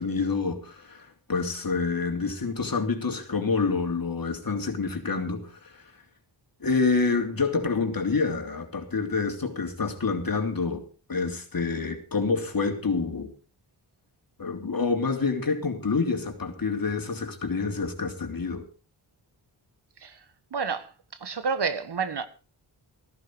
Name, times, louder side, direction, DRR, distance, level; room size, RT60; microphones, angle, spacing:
voice 1, 0.0-5.7 6.6-10.8 11.1-13.3 14.4-18.6, left 4 dB, 45° left, 3.2 m, -27 dB
voice 2, 20.5-22.3, right 5 dB, 55° right, 1.4 m, -30 dB
14.5 x 13.0 x 4.6 m
cardioid pair, 50°, 47 cm